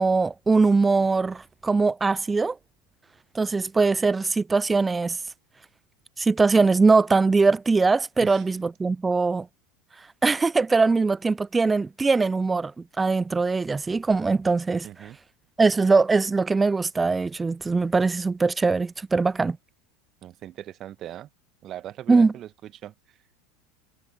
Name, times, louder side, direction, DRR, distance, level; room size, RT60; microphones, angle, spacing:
voice 1, 0.0-2.6 3.3-5.2 6.2-9.5 10.2-12.7 13.0-15.1 15.6-19.6 22.1-22.3, right 4 dB, 15° right, 0.3 m, -21 dB
voice 2, 14.8-15.2 20.2-21.3 21.6-23.2, right 12 dB, 40° right, 1.3 m, -40 dB
figure-of-eight pair, 80°, 0 cm